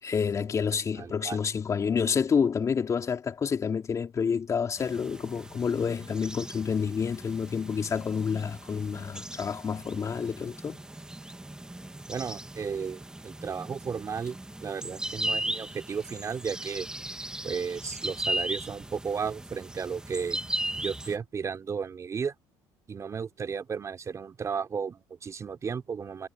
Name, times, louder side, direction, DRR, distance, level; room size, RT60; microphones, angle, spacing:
voice 1, 0.0-10.8, left 6 dB, 35° left, 3.8 m, -29 dB
voice 2, 1.0-1.4 12.1-16.9 17.4-20.4 20.8-22.3 22.9-26.3, right 6 dB, 35° right, 4.2 m, -34 dB
sound 1, 4.8-21.2, right 1 dB, 10° right, 1.7 m, -37 dB
supercardioid pair, 100°, 9 cm